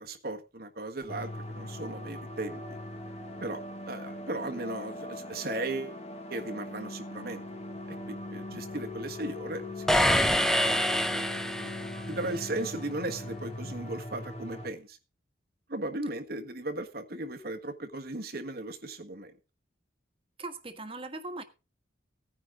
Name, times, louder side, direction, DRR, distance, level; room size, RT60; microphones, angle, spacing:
voice 1, 0.0-2.6 3.4-6.0 6.3-7.4 8.1-11.7 12.1-15.0 15.7-19.4, right 2 dB, 55° right, 1.5 m, -37 dB
sound 1, 1.1-14.7, left 1 dB, 35° left, 1.7 m, -40 dB
sound 2, 9.9-12.1, equal, 5° left, 0.8 m, -26 dB
voice 2, 20.4-21.4, right 2 dB, 30° right, 1.6 m, -39 dB
17.0 x 10.0 x 3.8 m
head